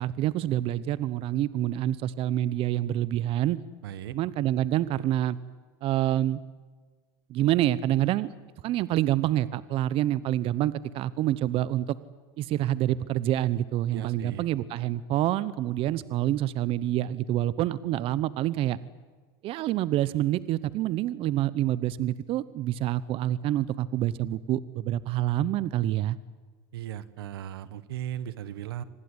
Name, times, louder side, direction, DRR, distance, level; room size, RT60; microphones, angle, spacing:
voice 1, 0.0-3.6 4.1-5.4 5.8-6.4 7.3-8.3 8.6-12.0 12.4-18.8 19.4-26.2, right 13 dB, 50° right, 18 dB, 0.9 m, -27 dB
voice 2, 3.8-4.2 13.9-14.4 26.7-28.8, right 11 dB, 85° right, 16 dB, 1.4 m, -37 dB
25.5 x 19.0 x 9.8 m, 1.5 s
supercardioid pair, 105°, 12 cm